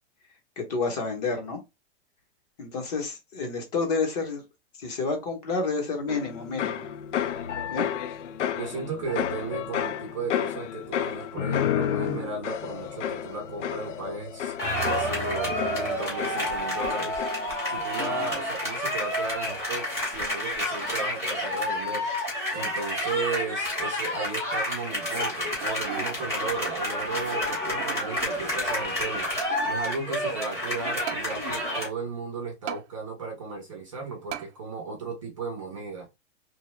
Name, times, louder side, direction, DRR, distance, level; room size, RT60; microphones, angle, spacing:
voice 1, 0.6-1.6 2.6-4.4 4.8-6.9 7.7-7.9, left 4 dB, 35° left, 0.9 m, -29 dB
sound 1, 6.1-17.7 18.0-18.5, left 9 dB, 80° left, 0.6 m, -31 dB
voice 2, 8.6-14.5 14.8-17.2 17.7-22.1 22.5-29.3 29.6-36.1, right 4 dB, 30° right, 0.5 m, -35 dB
sound 2, 14.6-31.9, left 1 dB, 10° left, 0.8 m, -29 dB
sound 3, 25.6-26.2 26.7-26.8 27.5-28.1 29.1-29.9 31.1-31.3 32.7-32.8 34.3-34.5 35.1-35.2, right 12 dB, 75° right, 0.5 m, -37 dB
2.9 x 2.2 x 3.1 m
supercardioid pair, 175°, 36 cm